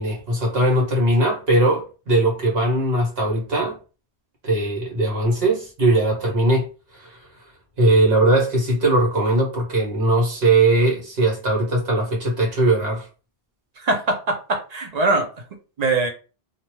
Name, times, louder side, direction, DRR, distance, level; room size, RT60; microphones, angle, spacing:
voice 1, 0.0-3.8 4.4-6.7 6.9-7.2 7.8-13.1, right 2 dB, 70° right, 1.3 m, -20 dB
voice 2, 13.8-15.3 15.8-16.1, right 2 dB, 45° right, 0.6 m, -22 dB
2.6 x 2.1 x 3.0 m
omnidirectional pair, 1.1 m